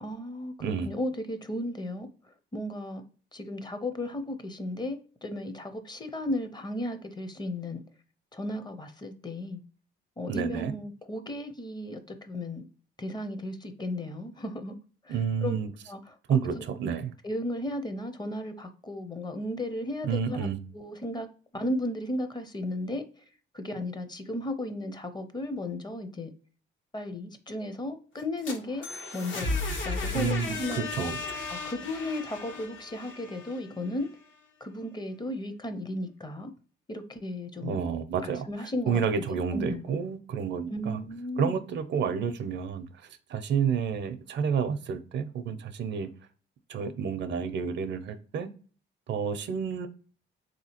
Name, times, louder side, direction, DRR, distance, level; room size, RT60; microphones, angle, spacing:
voice 1, 0.0-2.1 2.5-3.0 3.3-7.8 8.3-9.6 10.2-12.6 13.0-14.8 15.0-15.6 15.9-16.2 16.5-16.6 17.2-20.5 20.7-21.3 21.5-23.0 23.5-26.3 26.9-28.9 29.1-31.1 31.5-34.1 34.6-36.5 36.9-37.8 38.2-39.0 39.5-39.8 40.7-41.6, left 1 dB, 20° left, 0.6 m, -35 dB
voice 2, 0.6-0.9 10.3-10.7 15.1-15.7 16.3-17.1 20.0-20.6 30.1-31.4 37.6-38.5 38.9-41.0 41.4-42.9 43.3-46.1 46.7-48.5 49.1-49.9, right 6 dB, 65° right, 0.5 m, -30 dB
sound 1, 28.2-34.1, left 3 dB, 70° left, 0.9 m, -35 dB
3.7 x 2.8 x 2.8 m
cardioid pair, 90°, 20 cm